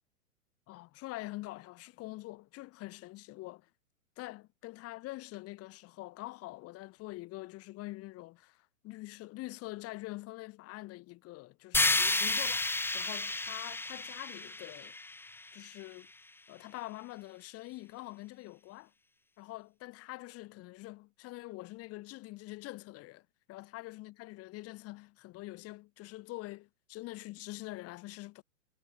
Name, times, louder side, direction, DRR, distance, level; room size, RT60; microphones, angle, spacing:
voice 1, 0.7-3.7 4.2-15.0 15.5-16.1 16.5-18.9 19.4-28.4, left 19 dB, 35° left, 4.0 m, -45 dB
sound 1, 11.7-15.8, left 2 dB, 5° left, 2.1 m, -31 dB
hypercardioid pair, 125°, 43 cm